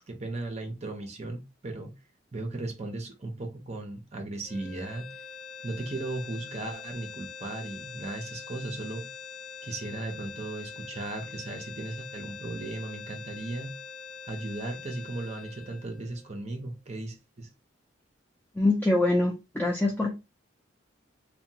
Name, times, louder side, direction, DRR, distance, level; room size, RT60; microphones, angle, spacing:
voice 1, 0.1-1.9 2.3-5.1 5.6-9.1 9.6-13.7 14.3-17.5, right 2 dB, 35° right, 0.7 m, -36 dB
sound 1, 4.4-16.7, left 6 dB, 60° left, 0.5 m, -44 dB
voice 2, 18.6-20.1, left 2 dB, 10° left, 0.4 m, -24 dB
2.8 x 2.2 x 2.7 m
head